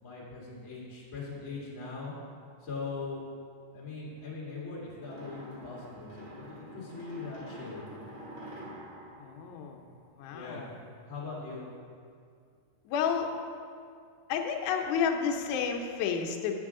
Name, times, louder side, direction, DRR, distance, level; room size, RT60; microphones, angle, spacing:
voice 1, 0.0-2.1 2.6-3.2 3.7-7.8 10.3-10.8 11.1-11.7, left 4 dB, 40° left, -7 dB, 1.2 m, -40 dB
sound 1, 5.0-10.3, equal, 35° right, 1.5 m, -47 dB
voice 2, 9.2-9.9 10.2-10.7 12.9-13.3 14.3-16.5, left 7 dB, 75° left, 3 dB, 2.0 m, -31 dB
8.8 x 8.4 x 3.6 m, 2.2 s
omnidirectional pair, 3.8 m